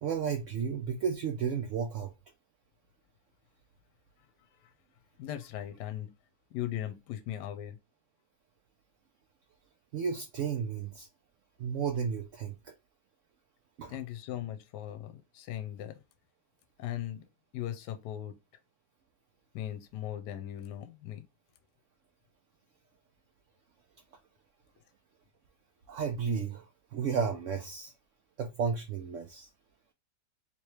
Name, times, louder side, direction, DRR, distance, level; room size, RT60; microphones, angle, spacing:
voice 1, 0.0-2.1 9.9-11.1 11.6-12.7 13.8-14.0 25.9-27.9 28.4-29.5, right 6 dB, 70° right, 0.7 m, -33 dB
voice 2, 5.2-6.1 6.5-7.8 13.9-16.0 16.8-17.3 17.5-18.4 19.5-21.3, left 12 dB, 80° left, 1.2 m, -38 dB
3.5 x 3.0 x 3.1 m
omnidirectional pair, 1.8 m